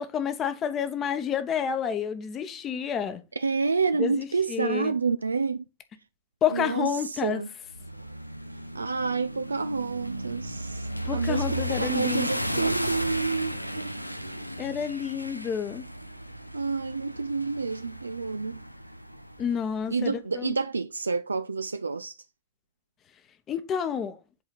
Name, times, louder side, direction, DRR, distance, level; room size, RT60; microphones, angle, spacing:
voice 1, 0.0-3.2 4.0-4.9 6.4-7.4 11.1-12.7 14.6-15.8 19.4-20.6 23.5-24.2, left 8 dB, 30° left, 1.0 m, -29 dB
voice 2, 3.4-5.6 6.5-7.5 8.7-13.9 16.5-18.6 19.9-22.1, right 4 dB, 80° right, 0.3 m, -29 dB
sound 1, 7.7-19.8, equal, 90° left, 0.5 m, -35 dB
7.8 x 4.2 x 4.1 m
figure-of-eight pair, 90°, 0 cm